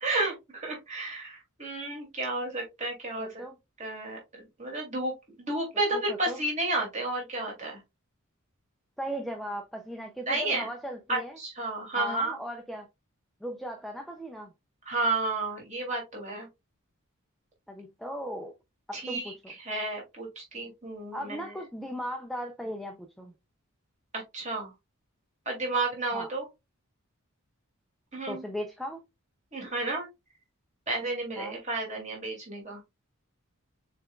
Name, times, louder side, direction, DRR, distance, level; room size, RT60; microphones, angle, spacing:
voice 1, 0.0-3.4 3.8-4.2 4.6-5.1 5.4-7.8 10.3-10.7 11.1-12.4 14.9-16.5 18.9-21.4 24.1-24.7 25.5-26.5 28.1-28.4 29.5-30.1 30.9-32.8, right 2 dB, 30° right, 2.4 m, -32 dB
voice 2, 3.2-3.5 5.9-6.4 9.0-11.4 12.0-12.9 13.4-14.5 17.7-18.5 18.9-19.5 21.1-23.3 26.1-26.3 28.3-29.0 31.4-31.6, equal, ahead, 0.4 m, -37 dB
6.6 x 3.5 x 2.3 m
head